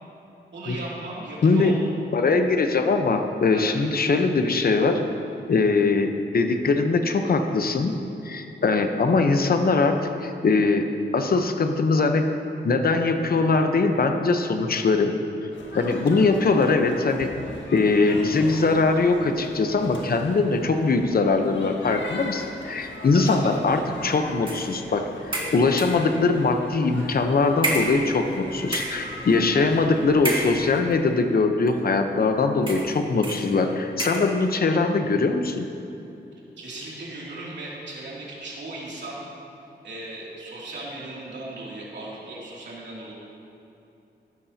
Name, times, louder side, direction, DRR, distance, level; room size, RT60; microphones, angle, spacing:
voice 1, 0.5-1.8 3.5-3.8 17.9-18.2 23.1-23.4 29.0-29.3 36.6-39.2 39.8-43.1, right 2 dB, 75° right, -6 dB, 2.8 m, -37 dB
voice 2, 1.4-1.7 2.1-5.0 5.5-7.9 8.2-10.9 11.1-12.2 12.6-15.1 15.7-17.3 17.7-35.7, left 3 dB, 55° left, 6 dB, 0.9 m, -21 dB
sound 1, 15.5-30.8, left 2 dB, 80° left, 1.6 m, -40 dB
sound 2, 24.5-24.7 25.3-26.1 26.9-27.1 27.6-28.4 28.6-29.1 30.2-30.9 31.7-31.8 32.6-33.0 33.2-33.5 34.0-34.3, right 1 dB, 25° right, 2.1 m, -29 dB
14.5 x 12.0 x 2.9 m, 2.8 s
wide cardioid pair, 100°, 19 cm